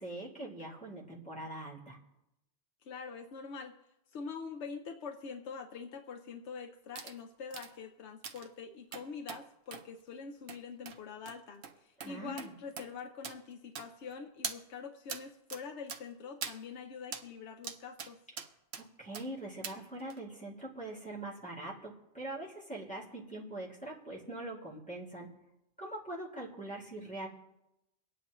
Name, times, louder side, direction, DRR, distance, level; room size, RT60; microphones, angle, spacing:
voice 1, 0.0-2.0 12.0-12.5 18.8-25.4 25.8-27.3, right 1 dB, 5° left, -6 dB, 2.4 m, -43 dB
voice 2, 2.8-3.7 4.1-18.2, left 5 dB, 85° left, 4 dB, 1.0 m, -45 dB
sound 1, 7.0-7.2 7.5-7.7 8.2-8.5 8.9-9.4 9.7-9.9 10.5-10.6 10.9-11.0 11.3-11.4 11.6-11.7 12.0-12.1 12.4-12.5 12.8-12.9 13.2-13.4 13.8-14.1 14.4-14.6 15.1-15.2 15.5-15.6 15.9-16.0 16.4-16.6 17.1-17.3 17.6-18.1 18.4-18.8 19.1-19.3 19.6-19.8 20.1-20.2, right 6 dB, 75° right, 1.1 m, -42 dB
23.5 x 9.3 x 3.0 m, 0.90 s
omnidirectional pair, 1.1 m